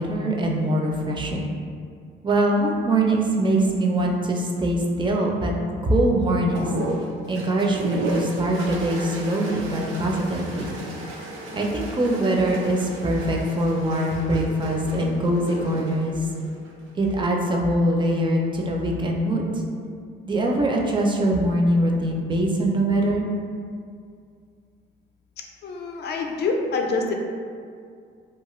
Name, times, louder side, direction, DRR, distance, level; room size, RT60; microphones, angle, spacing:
voice 1, 0.0-1.5 2.2-5.5 5.8-6.7 7.3-10.8 11.5-16.3 16.9-19.6 20.3-23.3, right 1 dB, 25° right, -1 dB, 0.4 m, -23 dB
sound 1, 6.5-17.2 18.4-19.0, right 2 dB, 85° right, 0.5 m, -34 dB
voice 2, 25.6-27.1, left 3 dB, 55° left, 2 dB, 0.4 m, -26 dB
2.5 x 2.4 x 3.0 m, 2.2 s
cardioid pair, 90°, 20 cm